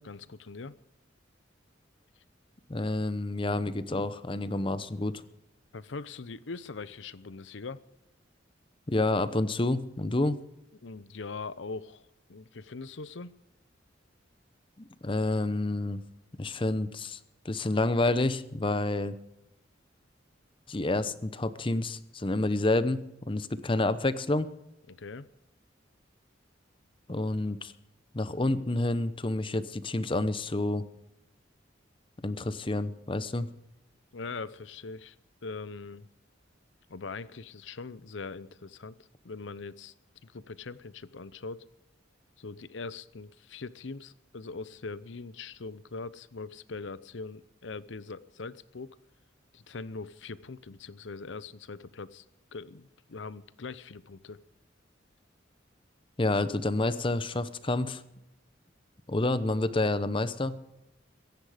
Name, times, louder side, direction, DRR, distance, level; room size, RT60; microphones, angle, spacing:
voice 1, 0.0-0.7 5.7-7.8 10.8-13.4 24.9-25.3 34.1-35.2 35.4-36.1 36.9-39.0 39.2-39.9 40.2-41.7 42.4-48.9 49.5-52.2 52.5-54.4, left 4 dB, 75° left, 17 dB, 0.7 m, -41 dB
voice 2, 2.7-5.1 8.9-10.4 15.0-16.0 16.4-17.2 17.4-19.2 20.7-24.5 27.1-27.7 28.1-30.8 32.2-33.5 56.2-58.0 59.1-60.6, left 2 dB, 25° left, 14 dB, 0.8 m, -29 dB
23.0 x 10.5 x 5.0 m, 0.90 s
head